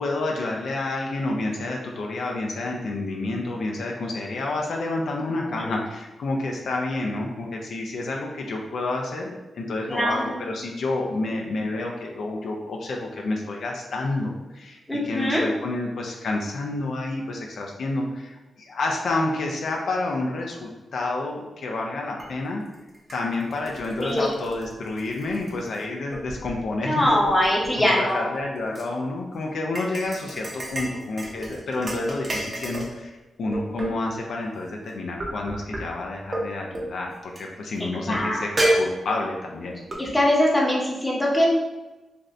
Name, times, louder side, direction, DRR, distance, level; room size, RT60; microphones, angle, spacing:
voice 1, 0.0-22.6 23.1-27.2 27.8-33.1 33.4-38.5 38.8-39.8, left 2 dB, 75° left, 0 dB, 0.4 m, -29 dB
voice 2, 9.9-10.4 14.9-15.4 24.0-24.3 26.8-28.3 38.1-38.7 40.0-41.4, left 1 dB, 5° left, -5 dB, 0.7 m, -22 dB
sound 1, 22.2-22.3 22.7-25.8 26.1-26.6 27.0-28.8 29.8-33.0 33.5-34.2 35.2-35.8 36.3-36.5 36.7-36.9 37.4-37.5 38.1-38.2 38.6-39.4 39.9-40.0, right 1 dB, 30° right, 0.6 m, -30 dB
2.5 x 2.5 x 3.1 m, 1.1 s
wide cardioid pair, 120°, 0 cm